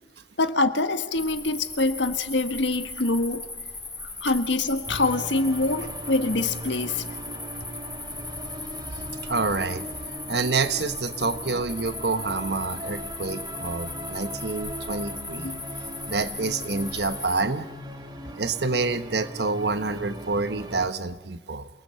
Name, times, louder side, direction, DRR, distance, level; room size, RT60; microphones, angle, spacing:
voice 1, 0.4-3.5 4.0-7.1 15.4-15.6, left 2 dB, 85° left, 9 dB, 1.5 m, -25 dB
sound 1, 1.1-17.4, left 3 dB, 10° left, 2.0 m, -38 dB
sound 2, 4.9-20.9, right 1 dB, 25° right, 2.0 m, -39 dB
voice 2, 8.9-9.9 10.3-15.5 16.1-17.7 18.4-21.7, right 3 dB, 65° right, 11 dB, 1.1 m, -28 dB
27.5 x 19.5 x 7.7 m, 1.1 s
head